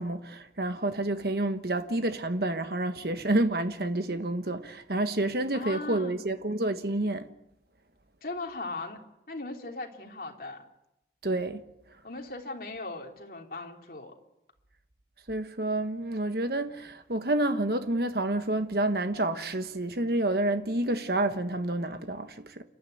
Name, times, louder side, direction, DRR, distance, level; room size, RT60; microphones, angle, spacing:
voice 1, 0.0-7.3 11.2-11.6 15.3-22.6, right 1 dB, 60° right, 1.3 m, -29 dB
voice 2, 5.5-6.2 8.2-9.0 9.3-10.6 12.0-14.1, left 3 dB, 55° left, 3.4 m, -38 dB
29.5 x 13.0 x 9.3 m
head